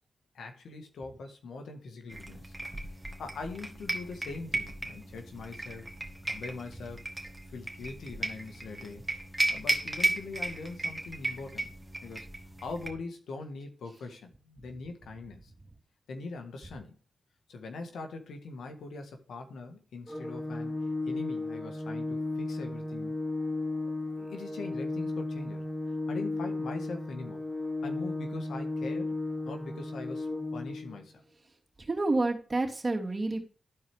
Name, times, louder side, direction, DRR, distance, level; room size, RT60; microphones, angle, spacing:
voice 1, 0.3-2.5 3.2-5.9 6.3-7.0 7.5-9.0 9.5-11.7 12.0-12.3 12.6-15.5 16.1-17.0 17.5-20.8 21.1-23.1 24.2-25.7 26.1-27.4 27.8-29.2 29.5-31.2, left 3 dB, 85° left, 5 dB, 1.5 m, -42 dB
sound 1, 2.1-12.9, right 2 dB, 20° right, 2.0 m, -35 dB
Organ, 20.1-31.0, left 2 dB, 5° left, 1.1 m, -34 dB
voice 2, 31.9-33.4, right 2 dB, 40° right, 1 dB, 2.8 m, -29 dB
13.5 x 4.7 x 3.5 m, 0.39 s
cardioid pair, 50°, 0 cm